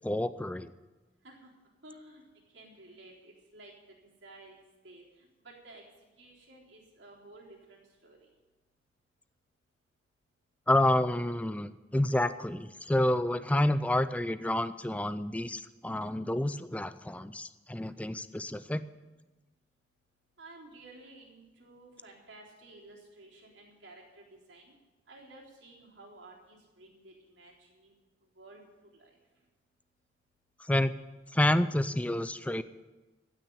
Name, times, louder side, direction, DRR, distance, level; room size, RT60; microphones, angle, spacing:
voice 1, 0.0-0.7 10.7-18.8 30.7-30.9 31.3-32.6, left 1 dB, 10° left, 14 dB, 0.4 m, -29 dB
voice 2, 1.8-2.3 2.5-3.7 4.2-5.8 6.2-8.3 20.4-24.7 25.1-27.9 28.4-28.6 29.0-29.1, right 2 dB, 85° right, -3 dB, 3.9 m, -53 dB
15.5 x 6.2 x 9.7 m, 1.2 s
head